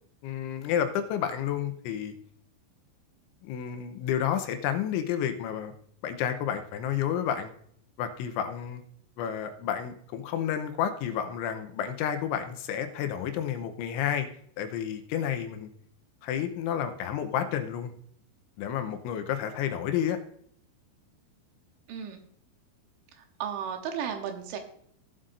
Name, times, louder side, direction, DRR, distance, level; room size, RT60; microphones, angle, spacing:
voice 1, 0.2-2.1 3.4-5.7 6.0-7.5 8.0-8.8 9.2-14.3 14.6-15.7 16.2-17.9 18.6-20.2, left 9 dB, 85° left, 7 dB, 3.2 m, -30 dB
voice 2, 21.9-22.2 23.1-24.6, right 8 dB, 75° right, 5 dB, 3.3 m, -34 dB
17.0 x 7.5 x 2.6 m, 0.63 s
omnidirectional pair, 5.5 m